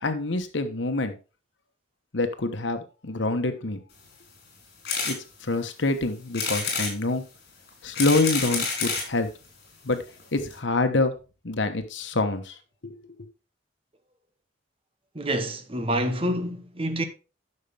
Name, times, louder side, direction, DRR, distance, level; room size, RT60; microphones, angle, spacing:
voice 1, 0.0-1.1 2.1-3.8 5.0-5.2 5.4-7.2 7.8-9.3 9.8-10.0 10.3-11.1 11.4-12.6 12.8-13.0, left 2 dB, 85° left, 1.2 m, -26 dB
sound 1, 4.8-5.2 5.6-5.7 6.3-6.9 7.7-9.1 9.9-10.0 10.2-10.3 10.5-10.6, left 4 dB, 60° left, 4.6 m, -28 dB
voice 2, 15.1-17.0, right 1 dB, 30° right, 1.1 m, -27 dB
11.0 x 6.6 x 3.5 m
head